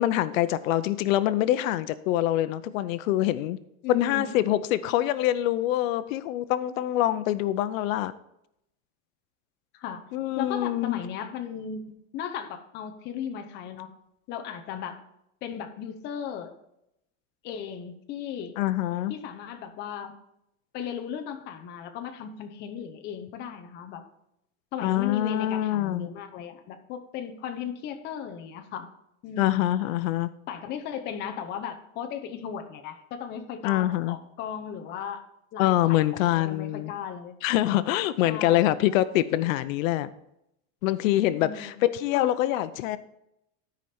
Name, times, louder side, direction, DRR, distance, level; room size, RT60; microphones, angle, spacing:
voice 1, 0.0-3.6 3.9-8.1 10.1-11.0 18.6-19.1 24.8-26.1 29.4-30.3 33.6-34.2 35.6-36.9 37.4-40.1 40.8-43.0, left 14 dB, 90° left, 14 dB, 0.7 m, -25 dB
voice 2, 3.8-4.5 9.7-10.1 10.4-11.8 12.1-13.9 14.3-15.0 15.4-16.5 17.4-18.6 19.1-20.1 20.7-24.0 24.7-28.9 29.2-29.7 30.5-35.2 35.5-37.4 38.2-38.7 41.4-41.8 42.1-42.5, left 8 dB, 25° left, 6 dB, 0.7 m, -36 dB
12.5 x 5.1 x 4.3 m, 0.80 s
supercardioid pair, 175°, 39 cm